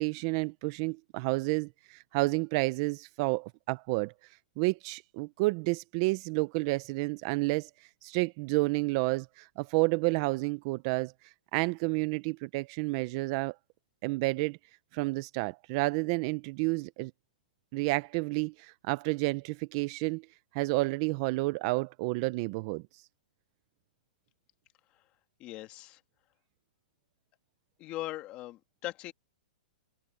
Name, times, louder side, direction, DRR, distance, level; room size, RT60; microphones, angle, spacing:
voice 1, 0.0-4.1 4.6-7.7 8.0-13.6 14.0-14.6 14.9-17.1 17.7-20.2 20.5-22.8, right 24 dB, 30° right, 0.4 m, -30 dB
voice 2, 25.4-26.0 27.8-29.1, left 16 dB, 25° left, 1.8 m, -40 dB
hypercardioid pair, 170°, 5 cm